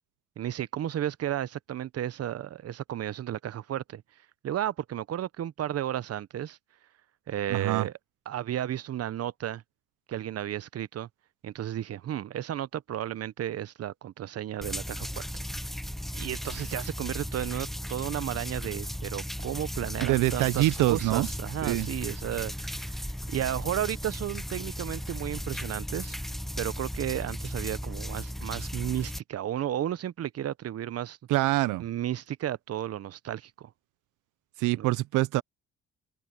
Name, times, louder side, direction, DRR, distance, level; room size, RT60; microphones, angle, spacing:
voice 1, 0.4-4.0 4.4-6.6 7.3-7.9 8.3-9.6 10.1-11.1 11.4-15.1 16.1-23.0 23.3-26.2 26.6-31.2 31.8-33.7 34.7-34.9, right 11 dB, 55° right, 0.8 m, -33 dB
voice 2, 7.5-7.9 20.0-21.3 21.6-21.9 31.3-31.8 34.6-35.4, right 18 dB, 85° right, 0.5 m, -25 dB
sound 1, 14.6-29.2, equal, ahead, 0.4 m, -36 dB
cardioid pair, 90°, 30 cm